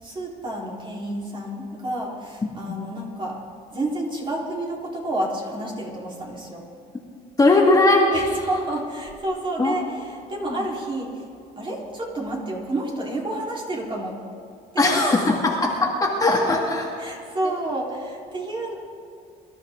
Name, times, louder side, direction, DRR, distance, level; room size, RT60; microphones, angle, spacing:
voice 1, 0.0-3.4 3.7-6.7 8.1-11.3 11.6-14.2 14.7-15.3 17.0-18.7, right 1 dB, 30° right, -2 dB, 3.9 m, -30 dB
voice 2, 7.4-8.2 9.6-9.7 14.8-17.1, left 2 dB, 20° left, -1 dB, 2.0 m, -19 dB
24.0 x 13.0 x 3.8 m, 2.5 s
cardioid pair, 110°, 17 cm